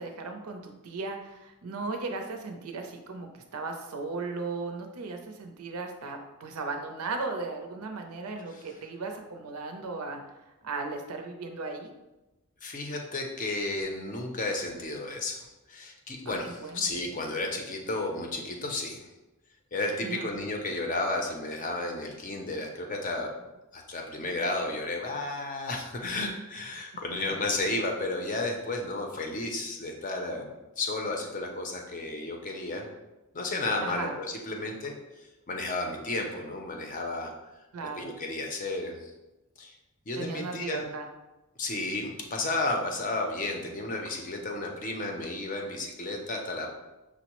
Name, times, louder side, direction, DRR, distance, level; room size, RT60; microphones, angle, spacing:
voice 1, 0.0-10.2 10.6-11.9 16.3-16.9 20.0-20.3 33.8-34.1 37.7-38.1 40.2-41.1, right 3 dB, 85° right, 4 dB, 0.5 m, -36 dB
voice 2, 12.6-19.1 19.7-23.3 23.7-32.9 33.3-37.3 37.9-39.1 39.6-39.8 40.1-40.9 41.6-46.7, left 2 dB, 35° left, 2 dB, 0.5 m, -33 dB
6.0 x 2.0 x 2.9 m, 1.0 s
head